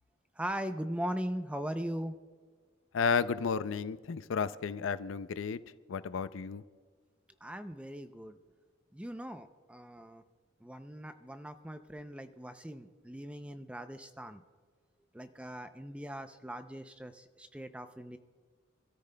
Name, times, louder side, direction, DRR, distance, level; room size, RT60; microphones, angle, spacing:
voice 1, 0.4-2.2 7.4-8.4 8.9-10.2 10.6-14.4 15.1-18.2, equal, 5° right, 9 dB, 0.5 m, -40 dB
voice 2, 2.9-5.6 5.9-6.6, left 5 dB, 70° left, 14 dB, 0.4 m, -32 dB
26.0 x 13.5 x 2.2 m, 1.5 s
head